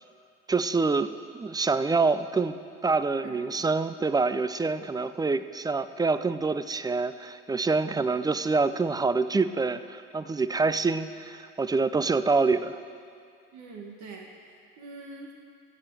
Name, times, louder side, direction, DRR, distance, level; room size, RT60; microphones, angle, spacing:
voice 1, 0.5-12.8, right 4 dB, 15° right, 13 dB, 0.3 m, -26 dB
voice 2, 13.5-15.4, right 3 dB, 65° right, 0 dB, 1.3 m, -44 dB
14.0 x 7.6 x 4.6 m, 2.3 s
supercardioid pair, 75°, 31 cm